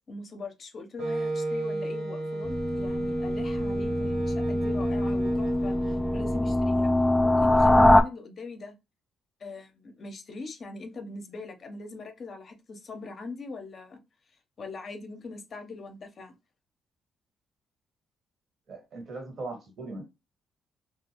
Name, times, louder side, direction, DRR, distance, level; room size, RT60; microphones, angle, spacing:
voice 1, 0.1-6.9 7.2-8.7 9.4-14.0 14.6-16.3, left 3 dB, 45° left, 0.6 m, -41 dB
Wind instrument woodwind instrument, 1.0-6.7, right 2 dB, 75° right, 1.2 m, -32 dB
sound 1, 2.4-8.0, left 1 dB, 5° left, 0.3 m, -23 dB
voice 2, 18.7-20.0, right 2 dB, 55° right, 1.5 m, -39 dB
2.4 x 2.2 x 2.8 m
cardioid pair, 90°, 0 cm